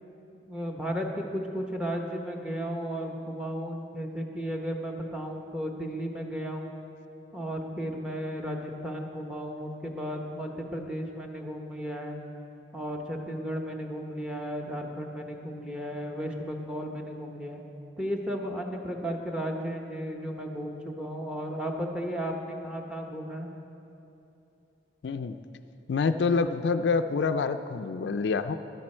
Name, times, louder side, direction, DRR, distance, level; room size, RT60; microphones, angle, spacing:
voice 1, 0.5-6.7 7.3-12.2 12.7-17.6 18.0-23.5, equal, 5° right, 2 dB, 0.9 m, -34 dB
voice 2, 25.0-25.4 25.9-28.6, left 4 dB, 70° left, 10 dB, 0.4 m, -27 dB
12.0 x 11.5 x 4.4 m, 2.8 s
head